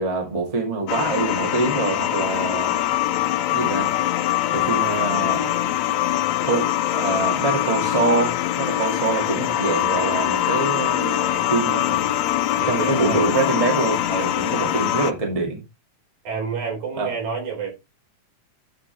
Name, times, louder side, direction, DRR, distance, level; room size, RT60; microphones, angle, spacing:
voice 1, 0.0-2.7 3.5-3.9 4.5-5.5 6.4-12.0 12.7-15.6 16.9-17.1, right 3 dB, 15° right, 1.8 m, -25 dB
sound 1, 0.9-15.1, left 13 dB, 80° left, 1.9 m, -23 dB
voice 2, 12.6-13.2 16.2-17.7, right 5 dB, 75° right, 5.3 m, -28 dB
11.0 x 5.1 x 3.3 m
omnidirectional pair, 3.3 m